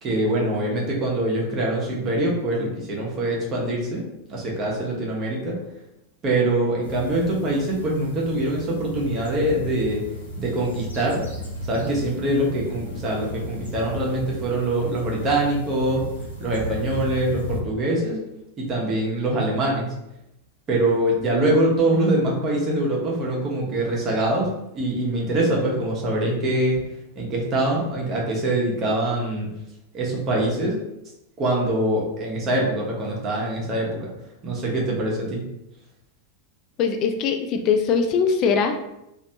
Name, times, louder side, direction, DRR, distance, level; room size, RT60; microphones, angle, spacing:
voice 1, 0.0-5.6 6.2-10.0 10.4-11.2 11.6-16.1 16.4-18.2 18.6-19.9 20.7-24.5 24.7-26.8 27.2-29.5 29.9-30.8 31.4-34.1 34.4-35.4, right 1 dB, 30° right, -3 dB, 1.0 m, -24 dB
sound 1, 6.8-17.6, equal, 80° left, 0.8 m, -34 dB
voice 2, 36.8-39.0, left 6 dB, 35° left, 5 dB, 0.4 m, -22 dB
3.2 x 2.6 x 2.8 m, 0.86 s
figure-of-eight pair, 90°, 0 cm